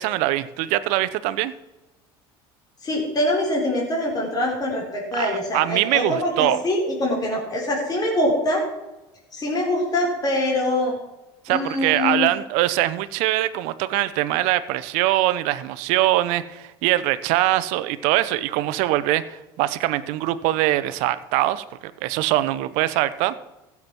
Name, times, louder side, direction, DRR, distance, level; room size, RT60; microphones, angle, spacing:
voice 1, 0.0-1.5 5.2-6.6 11.4-21.6 22.0-23.4, right 15 dB, 70° right, 15 dB, 0.8 m, -22 dB
voice 2, 2.8-8.6 9.3-11.0 11.5-12.3, left 1 dB, 30° left, -2 dB, 4.5 m, -24 dB
15.0 x 7.3 x 6.1 m, 1.0 s
hypercardioid pair, 85°, 13 cm